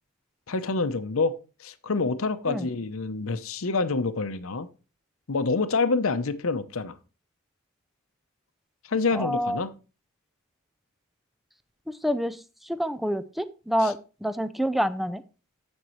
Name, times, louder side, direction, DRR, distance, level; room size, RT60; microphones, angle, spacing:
voice 1, 0.5-1.3 1.6-4.7 5.3-6.9 8.9-9.7 13.8-13.9, left 4 dB, 65° left, 0.7 m, -27 dB
voice 2, 9.1-9.6 11.9-15.2, equal, ahead, 0.4 m, -28 dB
14.5 x 5.3 x 3.1 m
head